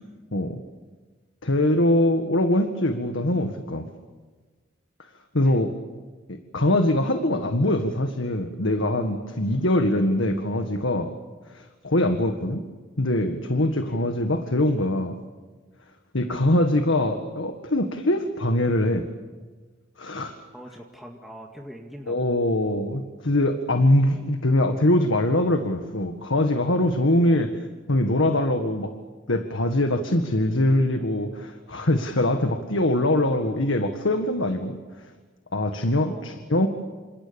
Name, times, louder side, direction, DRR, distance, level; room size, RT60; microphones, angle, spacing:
voice 1, 0.3-0.6 1.4-3.9 5.3-5.7 6.3-11.1 11.5-12.6 13.0-15.2 16.1-19.0 20.0-20.4 22.1-27.5 27.9-28.9 29.3-34.8 35.5-36.7, left 1 dB, 80° left, 6 dB, 1.8 m, -23 dB
voice 2, 20.5-22.4 27.2-27.5 36.1-36.3, equal, ahead, 0 dB, 2.1 m, -43 dB
29.0 x 27.5 x 7.1 m, 1.4 s
head